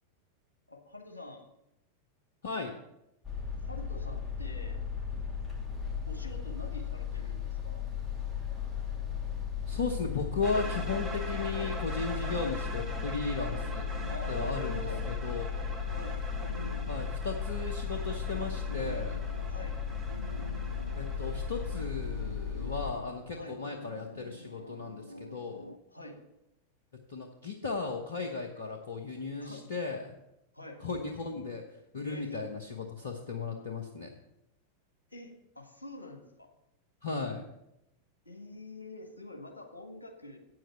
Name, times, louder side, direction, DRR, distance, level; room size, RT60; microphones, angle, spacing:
voice 1, 0.7-1.5 3.6-4.8 6.1-7.9 12.1-12.4 14.1-15.1 15.9-16.2 19.5-19.8 23.3-23.6 25.9-26.2 29.4-29.7 30.5-30.8 32.0-32.4 35.1-36.5 38.3-40.4, left 2 dB, 80° left, 2 dB, 1.7 m, -45 dB
sound 1, 3.2-22.9, left 7 dB, 5° left, 2.4 m, -36 dB
voice 2, 9.7-14.8 15.1-15.6 16.9-19.2 21.0-25.7 27.1-30.2 30.8-34.1 37.0-37.4, left 4 dB, 65° left, 3 dB, 1.0 m, -36 dB
sound 2, 10.4-21.8, right 2 dB, 15° right, 2.0 m, -44 dB
sound 3, 13.5-25.8, equal, 90° right, 0.4 m, -47 dB
8.9 x 7.7 x 5.9 m, 0.85 s
figure-of-eight pair, 90°, 0 cm